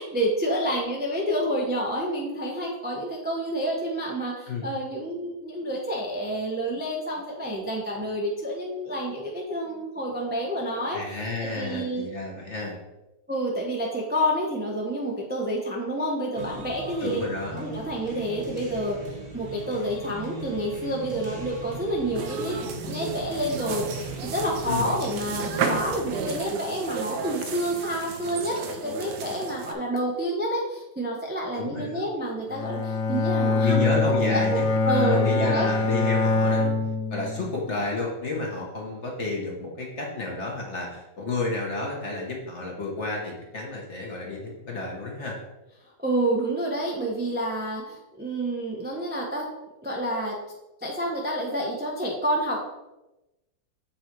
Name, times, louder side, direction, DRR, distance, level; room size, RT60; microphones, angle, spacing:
voice 1, 0.0-12.1 13.3-17.2 17.5-22.6 22.8-34.6 34.8-35.7 46.0-49.5 49.8-50.4 50.8-52.6, right 1 dB, 10° right, -2 dB, 0.6 m, -29 dB
voice 2, 10.9-12.8 17.0-17.6 24.7-24.9 31.5-32.0 33.5-36.8 37.1-45.4, left 3 dB, 40° left, -1 dB, 1.3 m, -31 dB
sound 1, 16.3-26.4, right 2 dB, 35° right, 1.3 m, -39 dB
sound 2, 22.1-29.7, right 5 dB, 65° right, 1.3 m, -33 dB
Bowed string instrument, 32.5-37.7, left 3 dB, 85° left, 0.7 m, -24 dB
7.3 x 4.0 x 4.6 m, 0.99 s
omnidirectional pair, 2.1 m